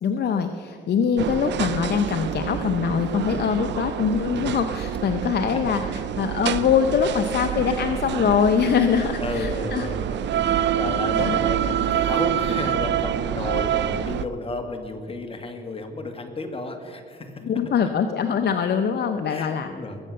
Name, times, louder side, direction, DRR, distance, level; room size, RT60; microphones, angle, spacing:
voice 1, 0.0-9.9 11.2-11.4 17.4-19.7, left 7 dB, 55° left, 7 dB, 0.8 m, -23 dB
sound 1, 1.2-14.2, right 10 dB, 65° right, 0.6 m, -26 dB
voice 2, 8.9-17.5 19.3-20.0, left 2 dB, 30° left, 5 dB, 2.0 m, -32 dB
21.0 x 7.8 x 6.5 m, 2.3 s
cardioid pair, 90°, 20 cm